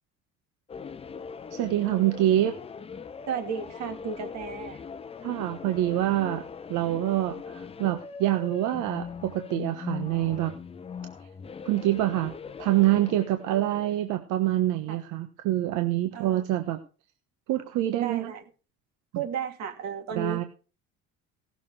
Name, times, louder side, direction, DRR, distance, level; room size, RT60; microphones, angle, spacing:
sound 1, 0.7-14.0, left 6 dB, 20° left, 0.7 m, -40 dB
voice 1, 1.5-2.5 5.2-6.4 6.7-10.5 11.6-12.3 12.6-16.8 17.5-18.3 20.1-20.4, right 14 dB, 85° right, 6 dB, 1.3 m, -26 dB
voice 2, 3.3-4.9 14.9-15.0 16.1-16.4 18.0-18.4 19.1-20.5, right 7 dB, 65° right, 5 dB, 2.5 m, -34 dB
17.5 x 6.9 x 4.8 m, 0.35 s
cardioid pair, 160°, 30 cm